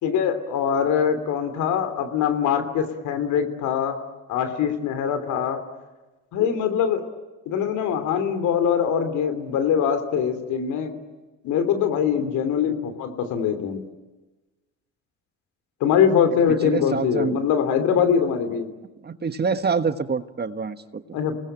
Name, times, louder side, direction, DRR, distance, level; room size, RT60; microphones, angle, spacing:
voice 1, 0.0-4.0 4.3-5.6 6.3-7.0 7.4-10.9 11.4-13.9 15.8-18.7 21.1-21.4, left 8 dB, 70° left, 8 dB, 3.1 m, -23 dB
voice 2, 16.5-17.4 19.0-21.2, right 5 dB, 35° right, 11 dB, 1.4 m, -26 dB
29.0 x 19.5 x 9.0 m, 1.2 s
hypercardioid pair, 55°, 31 cm